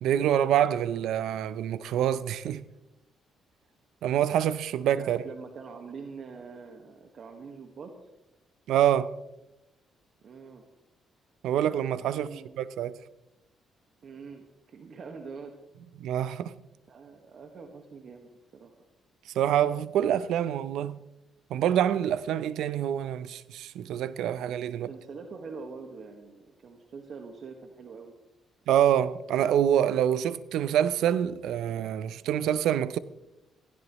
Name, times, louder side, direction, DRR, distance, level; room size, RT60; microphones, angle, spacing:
voice 1, 0.0-2.6 4.0-5.2 8.7-9.1 11.4-13.0 16.0-16.5 19.3-21.0 21.5-24.9 28.7-33.0, right 10 dB, 85° right, 0.7 m, -26 dB
voice 2, 5.0-7.9 10.2-10.6 11.9-12.6 14.0-15.5 16.9-18.7 24.7-28.1, right 5 dB, 55° right, 1.6 m, -44 dB
19.0 x 16.0 x 3.1 m
cardioid pair, 90°, 0 cm